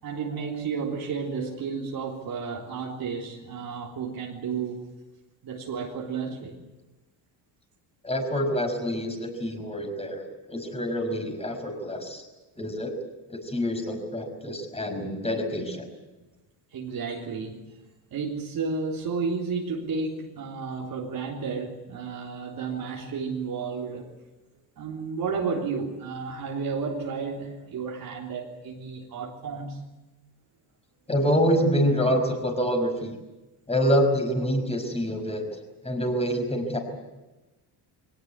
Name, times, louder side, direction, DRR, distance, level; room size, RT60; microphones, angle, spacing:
voice 1, 0.0-4.9 5.4-6.6 16.7-17.7 18.1-24.1 24.8-29.8, right 5 dB, 50° right, -2 dB, 3.6 m, -32 dB
voice 2, 8.0-12.2 12.6-12.9 13.3-15.9 31.1-33.2 33.7-35.4 35.8-36.8, equal, 15° left, 5 dB, 5.4 m, -26 dB
22.5 x 18.5 x 9.6 m, 1.1 s
cardioid pair, 135°, 46 cm